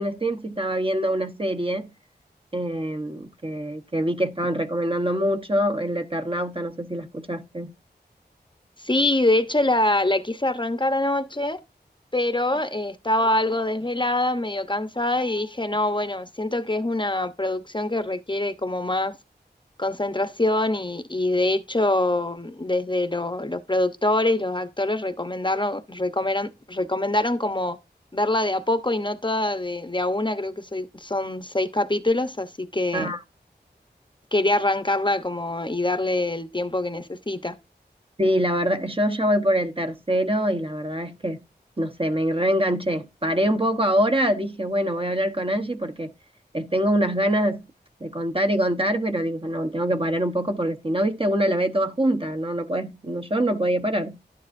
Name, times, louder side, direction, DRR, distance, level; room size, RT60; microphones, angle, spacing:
voice 1, 0.0-1.9 2.5-7.7 32.9-33.2 38.2-41.4 41.8-46.1 46.5-47.6 48.0-54.2, equal, 30° right, 1.2 m, -24 dB
voice 2, 8.8-11.6 12.1-19.2 19.8-27.8 28.1-33.1 34.3-37.5, left 1 dB, 25° left, 1.0 m, -24 dB
12.0 x 9.7 x 2.6 m
wide cardioid pair, 65°, 18 cm